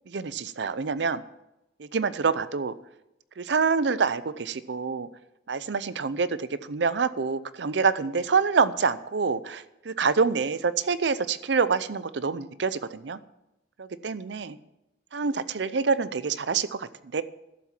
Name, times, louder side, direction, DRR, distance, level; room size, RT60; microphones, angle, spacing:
voice 1, 0.1-1.2 1.8-2.7 3.4-5.1 5.5-13.2 13.8-14.6 15.1-17.2, right 5 dB, 70° right, 15 dB, 0.6 m, -26 dB
12.5 x 7.3 x 7.3 m, 0.91 s
head